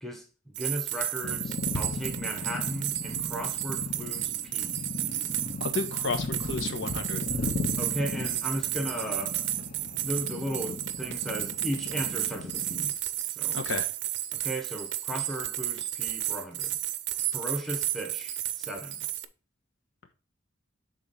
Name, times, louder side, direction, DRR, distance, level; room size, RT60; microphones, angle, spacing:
voice 1, 0.0-4.9 7.8-9.5 10.0-12.9 13.4-13.6 14.3-16.8 17.3-19.0, equal, ahead, 1.1 m, -36 dB
sound 1, 0.5-19.2, right 13 dB, 60° right, 0.5 m, -33 dB
sound 2, 1.2-12.9, left 2 dB, 45° left, 1.2 m, -36 dB
voice 2, 5.6-7.3 13.5-13.9, left 4 dB, 70° left, 1.1 m, -32 dB
7.2 x 3.8 x 4.2 m
head